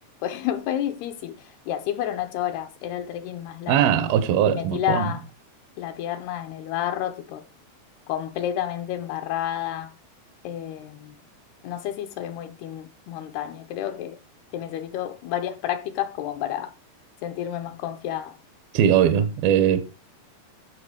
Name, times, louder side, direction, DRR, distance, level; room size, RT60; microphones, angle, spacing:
voice 1, 0.2-3.9 4.5-5.2 5.8-7.4 8.1-9.9 10.4-11.2 11.6-14.2 14.5-16.7 17.2-18.4, left 11 dB, 80° left, 2.7 m, -30 dB
voice 2, 3.7-5.1 18.7-19.8, right 9 dB, 75° right, 2.5 m, -20 dB
14.0 x 5.8 x 4.8 m
omnidirectional pair, 4.9 m